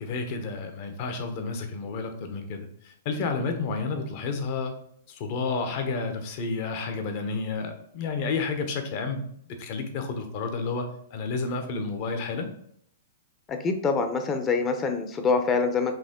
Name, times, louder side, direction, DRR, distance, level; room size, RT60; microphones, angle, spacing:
voice 1, 0.0-4.7 5.1-12.5, left 4 dB, 50° left, 6 dB, 0.9 m, -31 dB
voice 2, 13.5-15.9, left 4 dB, 25° left, 7 dB, 0.7 m, -25 dB
5.0 x 2.9 x 3.6 m, 0.70 s
hypercardioid pair, 120°, 0 cm